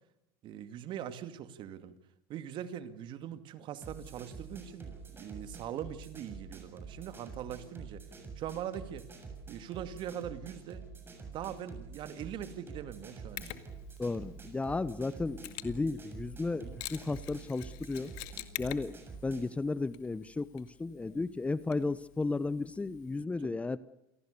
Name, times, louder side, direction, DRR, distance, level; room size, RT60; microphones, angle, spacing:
voice 1, 0.4-2.0 2.3-8.0 8.4-9.1 9.5-10.9 11.3-13.5 16.5-16.8 23.4-23.5, right 10 dB, 45° right, 11 dB, 2.4 m, -42 dB
sound 1, 3.8-19.6, right 4 dB, 20° right, 7.0 m, -47 dB
Mechanisms, 13.4-23.2, left 18 dB, 65° left, 2.1 m, -48 dB
voice 2, 14.0-18.1 18.6-19.0 19.2-23.8, left 3 dB, 10° left, 17 dB, 0.8 m, -34 dB
28.5 x 18.5 x 6.9 m, 0.86 s
supercardioid pair, 115°, 11 cm